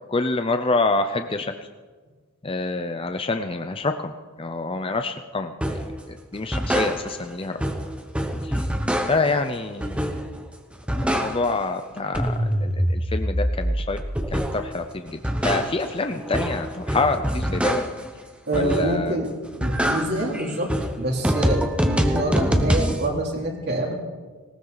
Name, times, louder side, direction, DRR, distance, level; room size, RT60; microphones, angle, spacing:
voice 1, 0.1-1.5 2.4-7.6 8.4-8.6 9.1-10.1 11.0-14.0 14.3-17.8 18.5-19.2, left 3 dB, 25° left, 7 dB, 0.6 m, -27 dB
sound 1, 5.6-5.9 6.3-7.3 7.6-9.4 9.8-10.4 10.7-11.7 12.0-14.7 15.1-18.1 18.5-19.1 19.4-23.0, equal, 5° right, 1.0 m, -25 dB
voice 2, 18.5-19.3 19.6-20.7 21.0-23.9, right 1 dB, 45° right, 0 dB, 3.2 m, -26 dB
19.0 x 18.5 x 4.0 m, 1.4 s
head